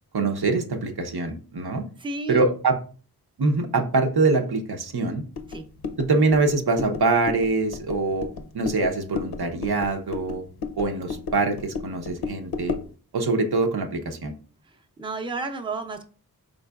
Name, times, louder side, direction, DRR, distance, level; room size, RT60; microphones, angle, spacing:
voice 1, 0.1-1.8 2.3-2.8 3.4-5.2 6.0-8.3 8.5-10.4 10.8-12.8 13.1-14.3, right 3 dB, 80° right, 4 dB, 0.8 m, -24 dB
voice 2, 2.0-2.4 5.5-5.6 14.7-16.0, right 3 dB, 15° right, 5 dB, 0.5 m, -32 dB
sound 1, 5.3-12.9, left 4 dB, 85° left, 0.6 m, -34 dB
4.7 x 3.8 x 2.3 m, 0.39 s
wide cardioid pair, 65°, 38 cm